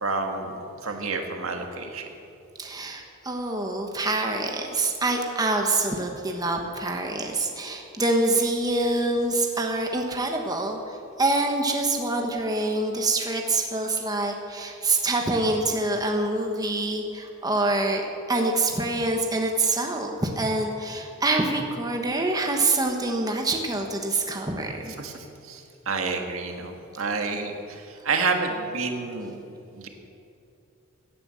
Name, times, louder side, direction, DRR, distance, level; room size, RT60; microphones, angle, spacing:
voice 1, 0.0-2.1 25.0-29.4 29.7-29.9, right 4 dB, 75° right, 4 dB, 1.8 m, -29 dB
voice 2, 2.6-24.9, right 2 dB, 20° right, 2 dB, 1.3 m, -26 dB
17.0 x 9.5 x 7.7 m, 2.8 s
head